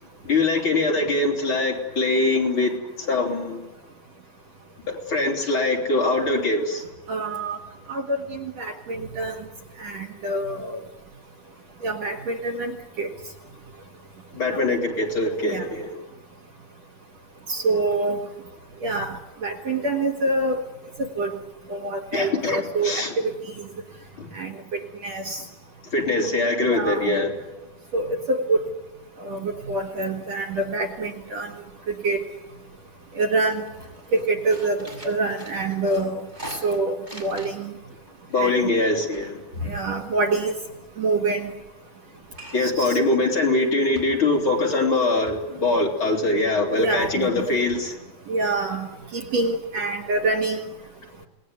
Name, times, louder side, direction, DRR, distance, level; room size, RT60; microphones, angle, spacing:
voice 1, 0.2-3.7 4.9-6.8 14.3-16.0 22.1-23.2 24.2-24.3 25.8-27.3 38.3-39.4 42.5-48.0, left 2 dB, 35° left, 0 dB, 4.2 m, -23 dB
voice 2, 7.1-7.6 7.9-9.5 9.8-10.8 11.8-13.1 14.5-14.6 15.4-15.7 17.5-18.2 18.8-20.6 21.0-21.4 21.7-23.7 24.3-25.4 26.7-27.1 27.9-28.7 29.2-31.5 32.0-32.2 33.1-33.7 34.1-37.7 38.4-38.6 39.6-40.5 41.0-41.5 42.6-43.0 46.7-47.6 48.3-50.6, right 2 dB, 50° right, 6 dB, 2.7 m, -26 dB
sound 1, 30.9-31.5 31.8-32.6 33.0-33.2 33.5-37.8 38.1-40.5 42.3-42.9 43.3-43.4 44.0-44.5 44.9-45.0 45.3-45.4, right 1 dB, 10° right, 5.7 m, -43 dB
28.0 x 19.5 x 9.5 m, 1.1 s
omnidirectional pair, 4.2 m